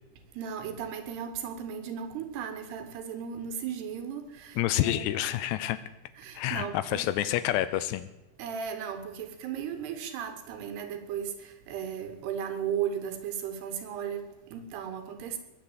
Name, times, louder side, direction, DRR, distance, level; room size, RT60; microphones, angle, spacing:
voice 1, 0.3-5.2 6.2-7.1 8.4-15.4, right 8 dB, 70° right, 3.3 m, -36 dB
voice 2, 4.6-5.8 6.4-8.1, left 13 dB, 80° left, 2.7 m, -28 dB
21.0 x 8.1 x 8.1 m
omnidirectional pair, 5.2 m